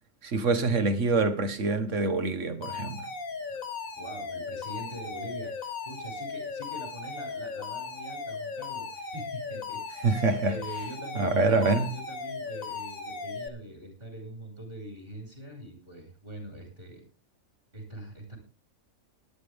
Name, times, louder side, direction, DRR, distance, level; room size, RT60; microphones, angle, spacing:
voice 1, 0.2-3.0 10.0-10.6 11.2-11.9, right 3 dB, 65° right, 1.7 m, -25 dB
Alarm, 2.6-13.5, left 4 dB, 85° left, 2.1 m, -37 dB
voice 2, 4.0-9.9 10.4-17.0 17.7-18.4, right 1 dB, 45° right, 6.0 m, -43 dB
18.5 x 11.0 x 3.5 m
omnidirectional pair, 1.4 m